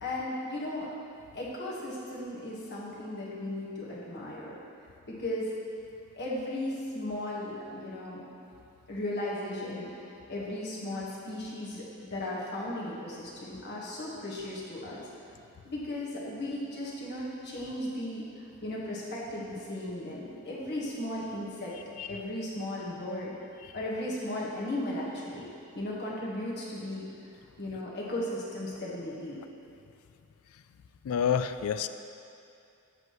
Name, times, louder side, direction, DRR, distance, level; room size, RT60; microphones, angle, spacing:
voice 1, 0.0-0.9 1.3-4.5 5.1-5.5 6.1-8.2 8.9-15.0 15.6-21.7 22.1-23.3 23.7-25.5 25.7-27.1 27.6-29.4, left 1 dB, 50° left, -6 dB, 1.5 m, -36 dB
voice 2, 31.0-31.9, left 8 dB, 65° left, 11 dB, 0.3 m, -28 dB
7.8 x 7.4 x 3.2 m, 2.6 s
head